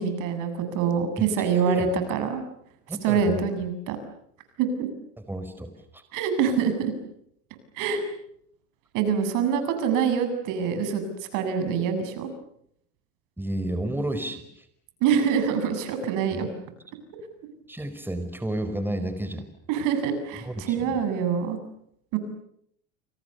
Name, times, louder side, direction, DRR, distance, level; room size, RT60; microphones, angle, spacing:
voice 1, 0.0-2.4 3.0-4.0 4.6-4.9 6.1-6.9 7.8-8.0 8.9-12.3 15.0-16.5 19.7-21.6 22.1-22.2, right 6 dB, 65° right, 9 dB, 7.6 m, -25 dB
voice 2, 1.2-1.9 2.9-3.4 5.2-6.0 13.4-14.7 16.3-16.5 17.7-19.5 20.4-21.0, right 1 dB, 5° right, 9 dB, 4.9 m, -32 dB
29.5 x 28.5 x 6.9 m, 0.72 s
supercardioid pair, 105°, 34 cm